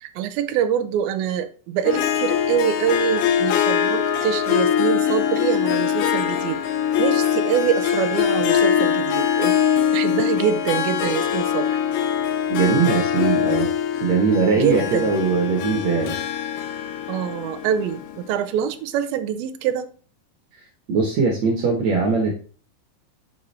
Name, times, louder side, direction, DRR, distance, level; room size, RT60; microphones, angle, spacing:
voice 1, 0.0-6.6 7.0-9.6 9.9-11.8 14.5-15.2 17.1-19.9, right 9 dB, 85° right, 2.4 m, -25 dB
Harp, 1.8-18.3, left 9 dB, 80° left, 2.7 m, -22 dB
voice 2, 12.5-13.7 14.0-16.2 20.9-22.3, right 4 dB, 60° right, 1.9 m, -20 dB
6.6 x 4.8 x 4.1 m
omnidirectional pair, 4.4 m